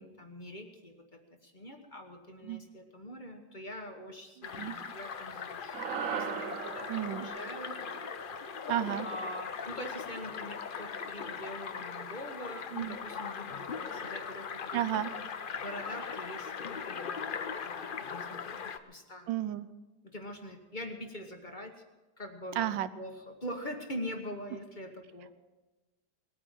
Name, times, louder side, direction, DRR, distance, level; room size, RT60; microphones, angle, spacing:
voice 1, 0.0-7.8 9.0-15.2 15.6-18.6 18.9-19.3 20.0-21.8 22.2-22.6 22.9-25.3, equal, 30° left, 4 dB, 1.3 m, -44 dB
sound 1, 4.4-18.8, left 6 dB, 75° left, 0.4 m, -40 dB
voice 2, 4.4-4.8 6.9-7.3 8.7-9.1 12.7-13.0 14.7-15.1 19.3-19.7 22.5-22.9, right 12 dB, 90° right, 14 dB, 1.4 m, -32 dB
sound 2, 5.7-10.2, right 6 dB, 55° right, 1.2 m, -40 dB
19.5 x 9.4 x 7.4 m, 1.1 s
omnidirectional pair, 2.0 m